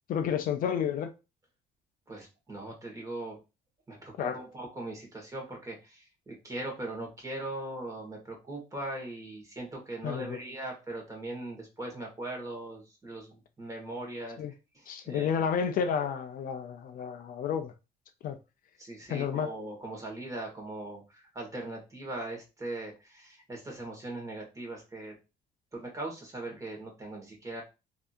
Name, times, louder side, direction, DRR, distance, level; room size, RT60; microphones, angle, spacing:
voice 1, 0.1-1.1 4.2-4.4 10.0-10.4 14.4-14.5 14.9-17.7 18.2-18.4 19.1-19.5, left 7 dB, 55° left, 0.4 m, -31 dB
voice 2, 2.1-3.4 3.9-14.4 14.7-15.3 16.0-16.1 18.8-25.2 25.7-27.6, right 2 dB, 20° right, 1.5 m, -40 dB
3.3 x 2.7 x 2.5 m
cardioid pair, 110°, 17 cm